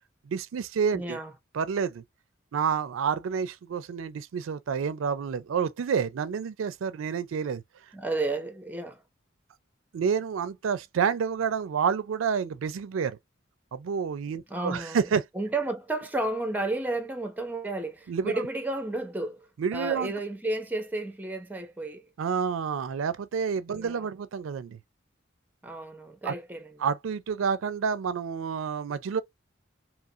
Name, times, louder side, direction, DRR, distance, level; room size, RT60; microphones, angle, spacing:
voice 1, 0.3-1.2 1.5-2.0 2.5-7.6 9.9-13.2 13.7-15.2 18.1-18.4 19.6-20.1 22.2-24.8 26.2-26.3 26.8-29.2, right 6 dB, 90° right, 0.4 m, -29 dB
voice 2, 0.9-1.3 7.9-9.0 14.5-15.1 15.3-22.1 23.7-24.1 25.6-26.8, right 2 dB, 10° right, 0.6 m, -32 dB
2.9 x 2.4 x 2.7 m
head